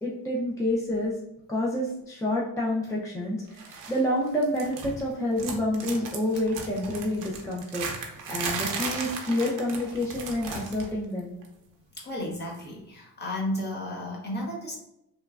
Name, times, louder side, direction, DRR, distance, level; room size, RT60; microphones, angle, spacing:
voice 1, 0.0-1.2 1.5-11.3, left 1 dB, 10° left, -5 dB, 0.3 m, -28 dB
sound 1, 3.6-4.0 4.3-5.1 5.4-10.9 11.2-11.5 12.5-12.6, right 4 dB, 50° right, 0.7 m, -36 dB
voice 2, 11.9-14.8, left 1 dB, 25° left, -2 dB, 0.9 m, -33 dB
3.0 x 2.2 x 2.3 m, 0.83 s
cardioid pair, 110°, 42 cm